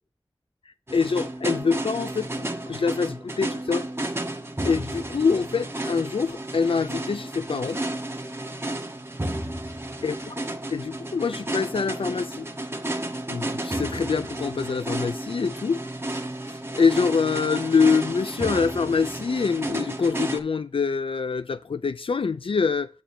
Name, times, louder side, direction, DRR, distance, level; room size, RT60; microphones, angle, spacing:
voice 1, 0.9-3.8 4.6-7.8 10.0-10.4 10.7-12.5 13.3-15.8 16.8-22.9, left 5 dB, 75° left, 0.4 m, -25 dB
sound 1, 0.9-20.4, right 1 dB, 25° right, 1.3 m, -32 dB
9.0 x 7.1 x 3.3 m
wide cardioid pair, 55°, 9 cm